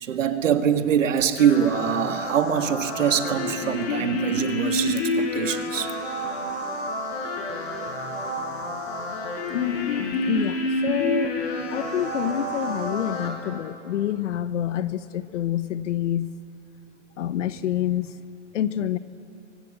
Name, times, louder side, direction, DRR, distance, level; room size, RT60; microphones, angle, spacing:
voice 1, 0.0-5.9, right 8 dB, 85° right, 7 dB, 1.9 m, -23 dB
sound 1, 1.4-13.3, left 1 dB, 55° left, 5.9 m, -29 dB
voice 2, 9.5-11.3 11.7-16.3 17.2-18.2 18.5-19.0, left 11 dB, 70° left, 13 dB, 1.2 m, -27 dB
29.5 x 24.5 x 7.9 m, 2.8 s
hypercardioid pair, 150°, 37 cm